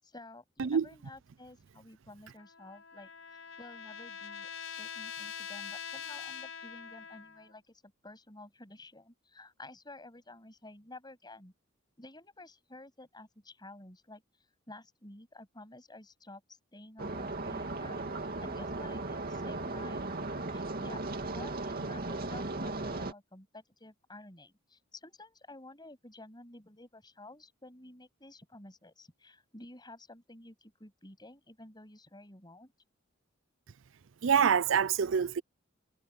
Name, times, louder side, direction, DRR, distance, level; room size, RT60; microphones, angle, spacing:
voice 1, 0.0-11.5 12.0-20.0 20.5-21.0 21.3-32.7, left 2 dB, 20° left, 7.9 m, -52 dB
Trumpet, 2.4-7.5, left 7 dB, 80° left, 4.3 m, -44 dB
sound 1, 17.0-23.1, right 2 dB, 50° right, 2.4 m, -37 dB
voice 2, 34.2-35.4, right 7 dB, 70° right, 0.5 m, -26 dB
head